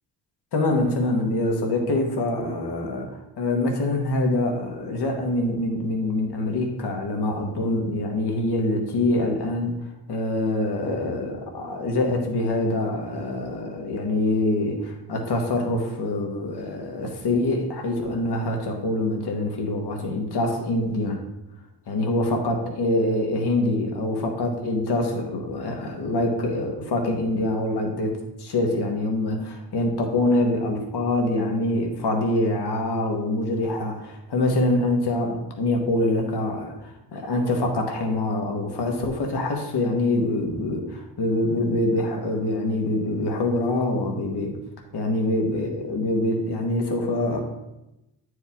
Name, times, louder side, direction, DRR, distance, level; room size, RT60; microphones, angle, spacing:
voice 1, 0.5-3.1 3.4-21.2 21.9-44.5 44.9-47.4, left 2 dB, 60° left, 2 dB, 1.4 m, -25 dB
8.7 x 4.8 x 3.6 m, 0.93 s
cardioid pair, 85°, 46 cm